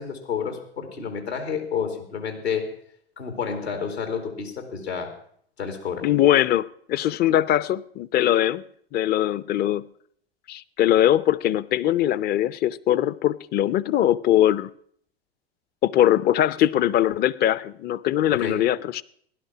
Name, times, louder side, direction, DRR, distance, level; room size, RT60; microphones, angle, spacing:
voice 1, 0.0-2.7 3.2-5.1 5.6-6.1 18.3-18.7, left 6 dB, 85° left, 6 dB, 2.7 m, -30 dB
voice 2, 6.0-8.6 8.9-9.8 10.5-14.7 15.8-19.0, left 12 dB, 30° left, 20 dB, 0.6 m, -21 dB
16.0 x 11.5 x 6.1 m, 0.62 s
hypercardioid pair, 85°, 31 cm